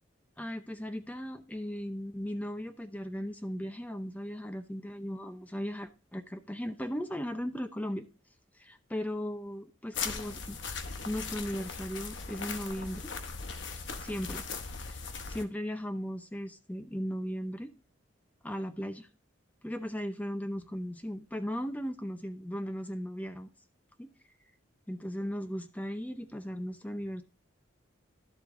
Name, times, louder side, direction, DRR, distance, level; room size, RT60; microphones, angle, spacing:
voice 1, 0.4-8.1 8.6-10.6 11.0-13.1 14.0-14.4 14.9-15.0 15.3-17.7 18.4-19.1 19.6-23.5 24.0-24.1 24.9-27.2, equal, 10° left, 0.6 m, -37 dB
sound 1, 9.9-15.4, left 5 dB, 65° left, 0.9 m, -39 dB
11.5 x 7.5 x 2.6 m
head